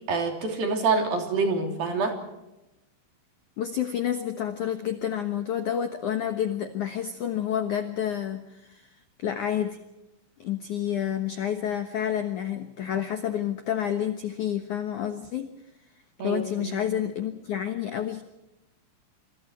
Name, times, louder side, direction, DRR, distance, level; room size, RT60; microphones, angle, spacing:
voice 1, 0.1-2.2 16.2-16.8, right 4 dB, 50° right, 4 dB, 4.6 m, -26 dB
voice 2, 3.6-8.9 9.2-9.8 10.4-15.5 16.2-18.2, left 9 dB, 85° left, 7 dB, 1.7 m, -29 dB
27.0 x 26.5 x 4.5 m, 0.96 s
omnidirectional pair, 5.7 m